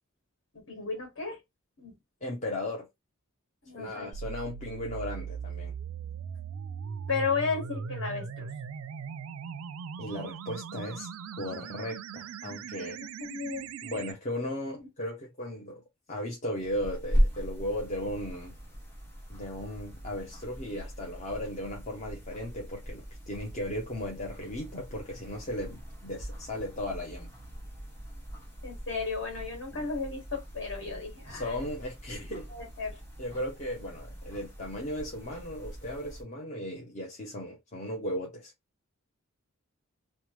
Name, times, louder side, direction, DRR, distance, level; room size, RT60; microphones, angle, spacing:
voice 1, 0.7-1.4 1.8-1.9 3.6-4.1 7.1-8.5 13.2-13.7 14.8-14.9 28.6-31.5 32.5-33.0, left 5 dB, 60° left, 1.7 m, -34 dB
voice 2, 2.2-2.9 3.7-5.7 10.0-11.1 11.4-13.0 13.8-15.8 16.1-18.5 19.3-27.3 31.3-32.5 33.2-38.5, left 1 dB, 35° left, 0.6 m, -36 dB
sound 1, 4.1-14.1, right 6 dB, 75° right, 0.3 m, -39 dB
sound 2, 16.6-36.2, equal, 10° left, 1.1 m, -38 dB
3.1 x 2.1 x 2.9 m
head